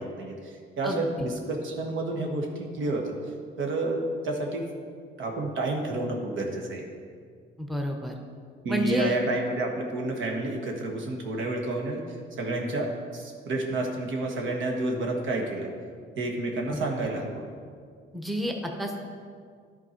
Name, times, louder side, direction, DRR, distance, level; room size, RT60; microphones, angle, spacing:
voice 1, 0.0-3.1 3.6-4.6 5.2-6.8 8.6-12.0 12.4-15.7 16.2-17.4, right 2 dB, 75° right, 1 dB, 1.3 m, -30 dB
voice 2, 0.8-1.3 7.6-8.1 8.7-9.1 16.7-16.8 18.1-19.0, equal, ahead, 2 dB, 0.9 m, -30 dB
11.0 x 4.6 x 4.4 m, 2.1 s
cardioid pair, 90°, 20 cm